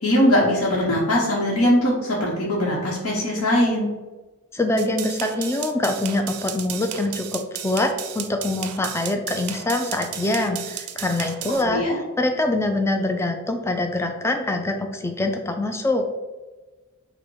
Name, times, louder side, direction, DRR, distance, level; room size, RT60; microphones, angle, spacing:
voice 1, 0.0-3.9 11.6-12.0, left 1 dB, 75° left, -5 dB, 0.9 m, -21 dB
voice 2, 4.5-16.0, left 2 dB, 10° left, 4 dB, 0.3 m, -24 dB
sound 1, 4.8-11.6, right 10 dB, 85° right, 0.4 m, -34 dB
5.0 x 2.1 x 4.6 m, 1.2 s
head